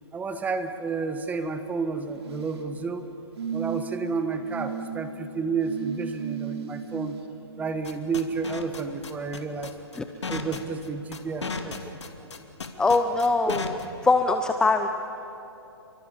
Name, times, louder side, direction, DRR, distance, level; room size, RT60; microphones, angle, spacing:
voice 1, 0.1-3.1 3.5-7.2 7.6-9.8 10.3-11.9 12.2-12.3, right 4 dB, 10° right, 9 dB, 1.5 m, -31 dB
sound 1, 2.1-2.7 3.4-4.0 4.5-4.9 5.6-7.2 8.5-8.6, right 7 dB, 70° right, 3.5 m, -34 dB
sound 2, 7.8-13.9, left 4 dB, 85° left, 2.6 m, -34 dB
voice 2, 12.8-14.9, left 3 dB, 5° left, 7 dB, 0.8 m, -22 dB
30.0 x 24.0 x 7.3 m, 3.0 s
hypercardioid pair, 135°, 14 cm